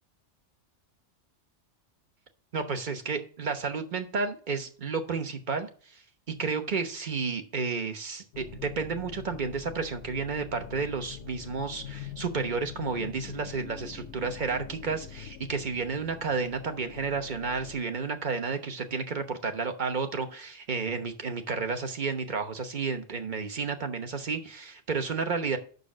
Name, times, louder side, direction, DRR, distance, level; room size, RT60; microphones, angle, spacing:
voice 1, 2.5-5.7 5.9-6.0 6.3-25.6, right 5 dB, 45° right, 7 dB, 1.1 m, -31 dB
sound 1, 8.3-17.8, left 10 dB, 85° left, 1.0 m, -44 dB
6.8 x 6.3 x 6.2 m, 0.43 s
omnidirectional pair, 1.2 m